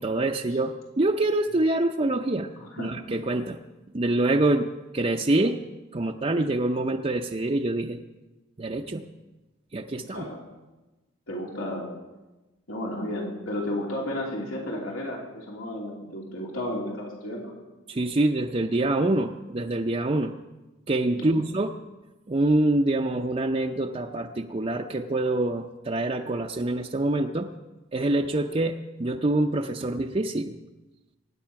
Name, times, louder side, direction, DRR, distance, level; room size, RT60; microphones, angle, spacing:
voice 1, 0.0-2.5 2.8-3.6 3.9-4.7 4.9-5.6 5.9-8.0 8.6-9.0 9.7-10.3 17.9-20.3 20.9-21.7 22.3-27.5 27.9-30.6, right 2 dB, 30° right, 2 dB, 0.6 m, -25 dB
voice 2, 2.6-2.9 10.1-10.4 11.3-11.9 12.7-17.5 21.2-21.5, left 1 dB, 90° left, -1 dB, 3.0 m, -33 dB
23.5 x 9.7 x 5.8 m, 1.1 s
head